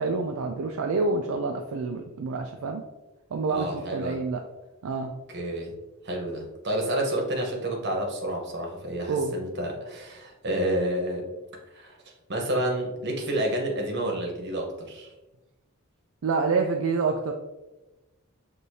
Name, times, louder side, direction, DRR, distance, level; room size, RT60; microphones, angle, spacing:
voice 1, 0.0-2.8 3.3-4.4 4.8-5.1 9.1-9.3 16.2-17.3, right 4 dB, 70° right, 3 dB, 0.4 m, -27 dB
voice 2, 3.5-4.2 5.3-5.7 6.0-11.3 11.7-12.0 12.3-15.1, right 1 dB, 50° right, 0 dB, 1.0 m, -29 dB
6.3 x 2.7 x 2.7 m, 1.0 s
head